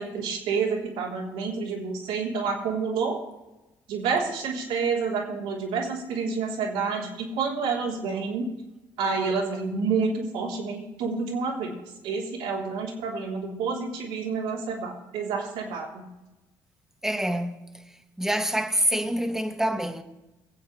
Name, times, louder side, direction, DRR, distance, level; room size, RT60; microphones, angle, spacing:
voice 1, 0.0-3.2 3.9-8.5 9.0-11.7 12.0-16.0, right 5 dB, 85° right, 3.7 m, -29 dB
voice 2, 17.0-17.8 18.2-20.0, right 1 dB, 5° right, 1.5 m, -26 dB
22.5 x 8.3 x 3.4 m
cardioid pair, 90°, 10 cm